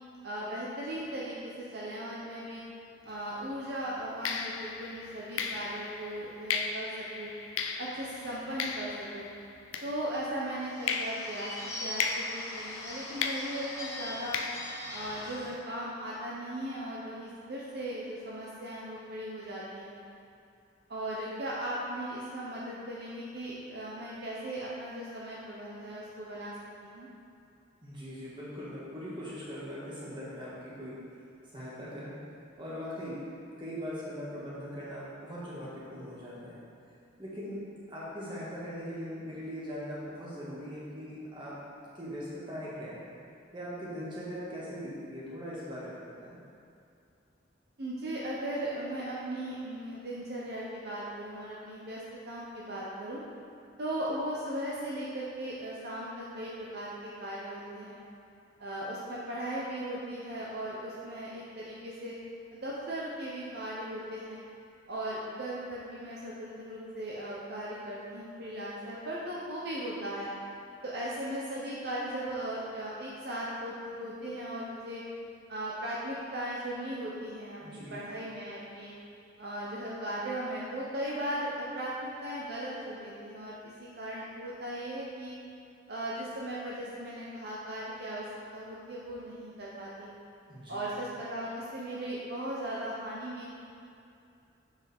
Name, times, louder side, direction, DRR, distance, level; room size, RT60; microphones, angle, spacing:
voice 1, 0.2-2.6 3.0-7.3 7.8-9.3 9.8-14.4 14.9-19.9 20.9-26.5 26.8-27.1 47.8-53.2 53.8-58.0 58.6-62.2 62.5-64.4 64.9-70.3 70.8-75.0 75.5-78.9 79.4-85.4 85.9-88.3 88.5-90.1 90.7-93.5, right 1 dB, 55° right, -6 dB, 0.7 m, -37 dB
sound 1, 3.1-3.3 4.2-10.4 10.9-15.6, left 5 dB, 85° left, 0.4 m, -37 dB
Bird / Bell, 10.6-15.6, left 1 dB, 15° left, 1.0 m, -41 dB
voice 2, 27.8-30.5 30.8-31.0 31.5-32.2 32.6-36.6 37.2-37.6 37.9-41.5 41.9-43.1 43.5-46.4 77.6-77.9 90.5-90.9, equal, 25° right, -8 dB, 1.6 m, -40 dB
7.1 x 5.6 x 3.5 m, 2.6 s
head